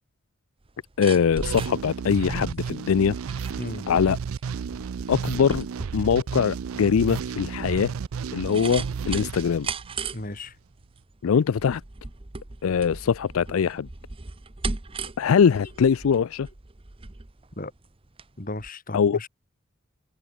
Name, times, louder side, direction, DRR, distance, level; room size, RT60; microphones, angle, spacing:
sound 1, 0.6-18.3 18.6-18.7, right 4 dB, 25° right, 0.8 m, -38 dB
voice 1, 1.0-3.2 3.9-4.2 5.1-5.6 5.9-7.9 8.3-9.7 11.2-11.8 12.6-13.9 15.2-16.5 18.9-19.2, left 6 dB, 80° left, 0.4 m, -22 dB
sound 2, 1.4-10.3, right 6 dB, 85° right, 0.4 m, -33 dB
voice 2, 10.1-10.5 17.6-17.7 18.4-19.3, left 2 dB, 40° left, 2.3 m, -35 dB
head